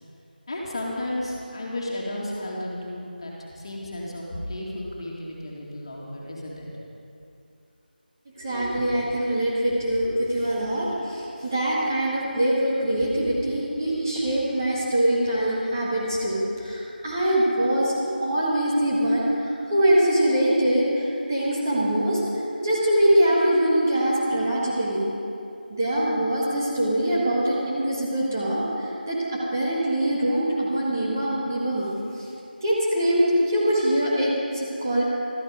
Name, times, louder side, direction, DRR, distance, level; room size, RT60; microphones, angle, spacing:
voice 1, 0.5-6.7 13.0-13.1, left 1 dB, 30° left, -4 dB, 2.3 m, -33 dB
voice 2, 8.4-17.9 18.2-22.2 22.6-25.1 25.7-31.9 32.2-32.3 32.6-35.0, right 1 dB, 20° right, -7 dB, 1.8 m, -23 dB
15.5 x 13.5 x 5.1 m, 2.7 s
figure-of-eight pair, 175°, 5 cm